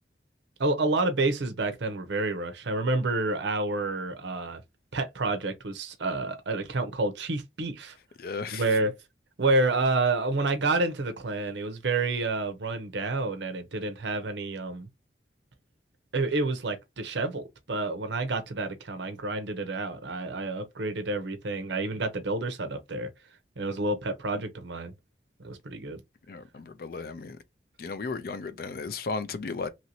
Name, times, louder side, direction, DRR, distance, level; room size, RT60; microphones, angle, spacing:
voice 1, 0.6-4.6 4.9-8.0 8.5-8.9 9.4-14.9 16.1-23.1 23.6-24.9 25.4-26.0, right 2 dB, 80° right, 0.7 m, -29 dB
voice 2, 8.2-8.6 26.3-27.4 27.8-29.7, left 4 dB, 55° left, 0.4 m, -35 dB
2.9 x 2.7 x 2.8 m
head